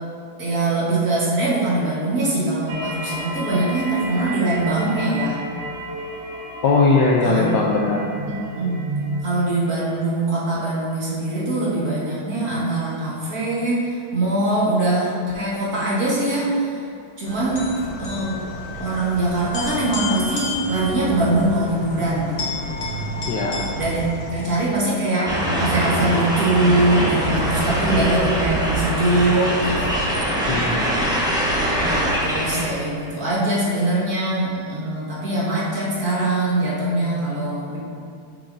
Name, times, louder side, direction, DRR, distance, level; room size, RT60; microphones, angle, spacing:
voice 1, 0.4-5.4 7.2-7.5 8.6-8.9 9.2-16.8 17.2-18.4 18.8-22.5 23.7-29.9 31.8-37.8, right 2 dB, 45° right, -8 dB, 2.1 m, -22 dB
sound 1, 2.7-9.2, right 2 dB, 70° right, 1.6 m, -32 dB
voice 2, 6.6-8.1 23.3-23.7 30.5-30.9, left 3 dB, 70° left, -2 dB, 1.1 m, -19 dB
sound 2, 17.3-24.8, left 2 dB, 45° left, 1.0 m, -31 dB
sound 3, 25.3-32.6, right 1 dB, 5° right, 0.4 m, -22 dB
8.8 x 6.9 x 2.6 m, 2.4 s
omnidirectional pair, 2.3 m